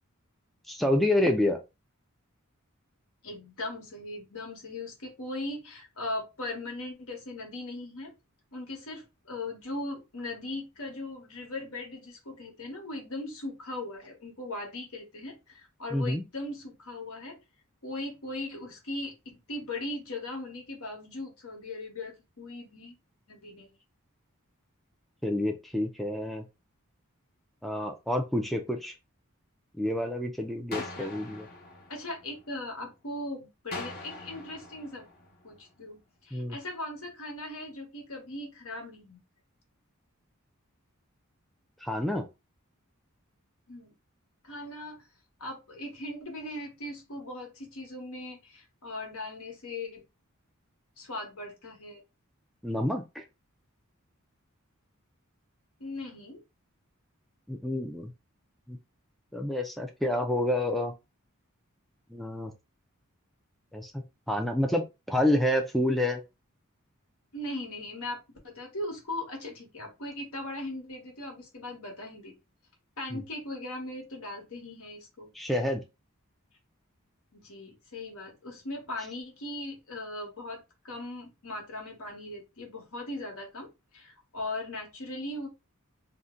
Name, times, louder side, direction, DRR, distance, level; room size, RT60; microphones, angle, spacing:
voice 1, 0.7-1.6 15.9-16.2 25.2-26.5 27.6-28.9 29.8-31.5 36.3-36.6 41.8-42.2 52.6-53.2 57.5-58.1 58.7-58.8 59.3-60.9 62.1-62.5 63.7-66.2 73.1-73.2 75.3-75.8, left 1 dB, ahead, 3 dB, 0.3 m, -28 dB
voice 2, 3.2-8.1 8.5-17.4 17.8-19.1 19.5-22.9 23.3-23.7 30.8-31.1 31.9-35.1 35.4-39.2 43.7-43.9 44.4-45.1 45.4-50.0 51.0-52.0 55.8-56.4 67.3-72.3 73.0-75.3 77.3-83.7 83.9-85.5, left 2 dB, 80° left, 1 dB, 1.2 m, -39 dB
sound 1, 30.7-32.8 33.7-35.8, left 2 dB, 45° left, 0.9 m, -43 dB
2.6 x 2.1 x 3.6 m, 0.26 s
head